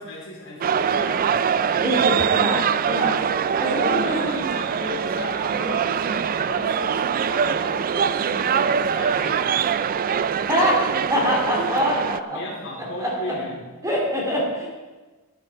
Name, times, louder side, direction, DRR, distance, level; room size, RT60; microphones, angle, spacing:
voice 1, 0.0-1.5 4.0-10.0 12.3-13.6, left 1 dB, 60° left, -3 dB, 3.7 m, -36 dB
sound 1, 0.6-12.2, right 7 dB, 40° right, 0.3 m, -23 dB
voice 2, 1.8-3.2 3.6-4.5 10.5-10.8 11.1-12.4 13.0-13.3 13.8-14.7, equal, 15° right, -2 dB, 2.7 m, -24 dB
13.0 x 9.3 x 4.6 m, 1.2 s
head